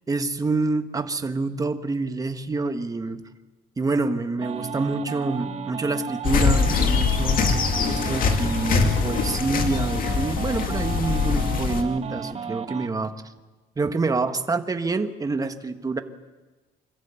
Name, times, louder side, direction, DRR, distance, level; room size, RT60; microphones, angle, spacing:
voice 1, 0.1-3.2 3.8-13.1 13.8-16.0, right 3 dB, 20° right, 8 dB, 1.4 m, -27 dB
sound 1, 4.4-12.9, right 7 dB, 40° right, 1.3 m, -34 dB
sound 2, 6.2-11.8, left 5 dB, 55° left, 2.2 m, -23 dB
25.5 x 14.5 x 8.9 m, 1.3 s
cardioid pair, 110°, 17 cm